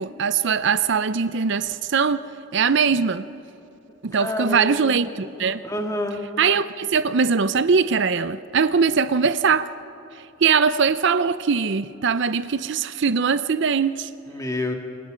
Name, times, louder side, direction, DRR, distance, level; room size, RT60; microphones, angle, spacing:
voice 1, 0.0-2.2 2.5-3.2 4.0-5.6 6.4-9.7 10.4-14.1, right 5 dB, 60° right, 0.5 m, -21 dB
voice 2, 4.1-5.2 5.6-6.2 14.3-14.7, left 1 dB, 15° left, 2.0 m, -28 dB
28.5 x 26.0 x 5.1 m
head